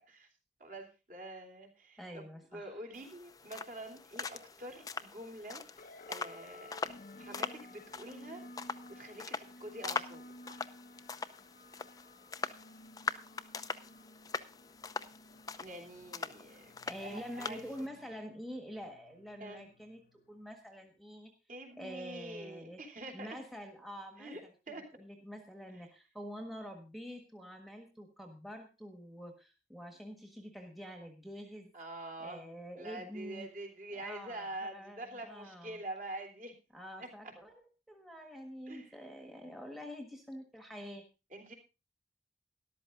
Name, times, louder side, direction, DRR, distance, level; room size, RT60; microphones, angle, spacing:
voice 1, 0.6-5.6 6.1-6.8 7.2-8.5 8.9-10.2 10.5-10.6 15.6-16.7 17.0-17.9 19.4-19.7 21.5-23.4 24.2-24.4 24.7-24.8 31.7-32.5 32.8-36.5 37.0-37.1 38.7-39.0 41.3-41.5, right 1 dB, 45° right, 3 dB, 3.4 m, -46 dB
voice 2, 2.0-2.8 16.9-21.3 21.8-22.8 23.1-24.5 24.9-31.7 32.2-33.5 33.9-35.8 36.7-37.5 37.9-41.0, equal, ahead, 4 dB, 1.4 m, -46 dB
sound 1, 2.9-17.9, left 4 dB, 20° left, 0.6 m, -42 dB
sound 2, 5.8-20.5, left 1 dB, 50° left, 0.8 m, -55 dB
13.0 x 12.0 x 3.8 m, 0.29 s
head